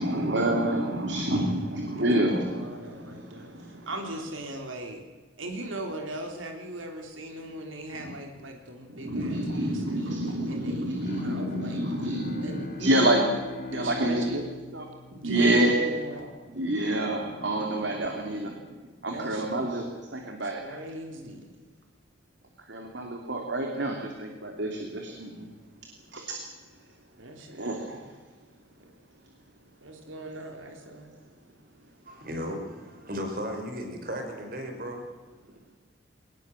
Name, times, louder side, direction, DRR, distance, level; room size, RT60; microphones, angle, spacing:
voice 1, 0.0-3.9 8.9-13.2 13.7-14.4 14.7-14.8 15.2-16.1 16.5-18.6 19.0-19.9 20.1-20.8 22.7-25.5 26.1-26.2 27.5-28.1, right 1 dB, 65° right, 2 dB, 2.9 m, -28 dB
voice 2, 1.9-5.0 5.4-11.8 12.4-13.3 13.7-14.4 15.1-16.2 19.1-19.9 20.6-21.7 27.2-28.0 28.8-28.9 29.8-31.1, right 1 dB, 85° right, 3 dB, 3.4 m, -38 dB
Bowed string instrument, 11.0-16.1, left 3 dB, 50° left, 4.2 m, -40 dB
voice 3, 32.0-35.0, equal, 45° right, 4 dB, 5.0 m, -35 dB
22.0 x 19.5 x 7.7 m, 1.4 s
head